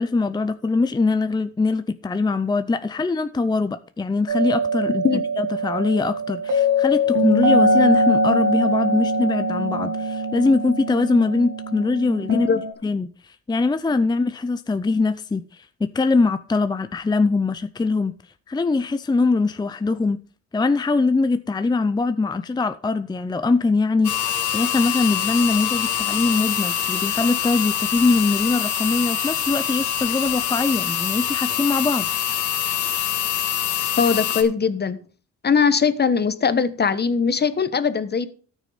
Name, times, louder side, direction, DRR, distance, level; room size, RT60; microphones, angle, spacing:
voice 1, 0.0-12.5 12.8-18.1 18.5-20.2 20.5-32.1, left 3 dB, 15° left, 0.6 m, -22 dB
sound 1, 4.3-12.7, equal, 85° right, 2.2 m, -22 dB
voice 2, 12.3-12.6 34.0-35.0 35.4-38.3, left 6 dB, 35° left, 1.2 m, -20 dB
sound 2, 24.0-34.4, left 10 dB, 75° left, 2.4 m, -25 dB
13.5 x 6.3 x 5.0 m
cardioid pair, 90°, 30 cm